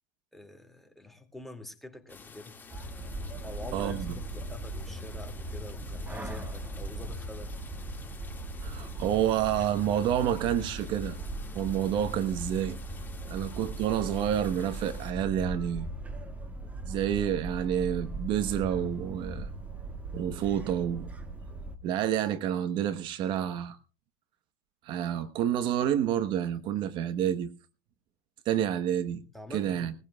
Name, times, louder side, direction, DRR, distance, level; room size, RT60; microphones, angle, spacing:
voice 1, 0.3-2.5 3.4-7.5 13.2-13.4 29.3-29.9, left 1 dB, ahead, 5 dB, 2.4 m, -46 dB
sound 1, 2.1-15.1, left 5 dB, 20° left, 2.1 m, -51 dB
sound 2, 2.7-21.8, right 1 dB, 15° right, 2.0 m, -39 dB
voice 2, 3.7-4.2 8.6-11.2 11.5-12.8 13.3-15.9 16.9-19.5 20.1-21.1 21.8-23.8 24.8-27.5 28.4-29.2 29.5-29.9, right 10 dB, 50° right, 12 dB, 1.1 m, -29 dB
20.5 x 15.0 x 2.3 m, 0.33 s
hypercardioid pair, 100°, 10 cm